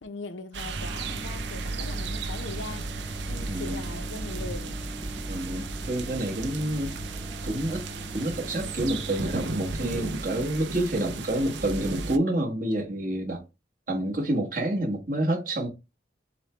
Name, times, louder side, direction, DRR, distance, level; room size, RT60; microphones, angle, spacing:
voice 1, 0.0-2.9 3.3-4.8, left 3 dB, 85° left, 0.7 m, -40 dB
sound 1, 0.5-12.2, right 3 dB, 70° right, 0.5 m, -35 dB
sound 2, 0.7-9.7, right 1 dB, ahead, 0.8 m, -39 dB
voice 2, 3.5-3.8 5.3-6.9 7.4-7.8 8.1-13.4 13.9-15.7, right 1 dB, 45° right, 1.4 m, -28 dB
6.8 x 2.3 x 3.2 m
head